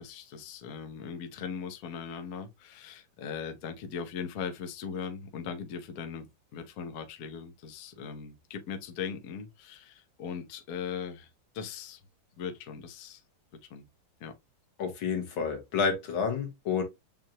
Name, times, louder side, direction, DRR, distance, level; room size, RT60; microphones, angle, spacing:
voice 1, 0.0-12.0 12.4-13.2 13.7-13.8 14.2-14.3, left 6 dB, 55° left, 1.1 m, -39 dB
voice 2, 14.8-16.8, left 6 dB, 90° left, 2.0 m, -29 dB
7.4 x 2.5 x 2.8 m
omnidirectional pair, 2.1 m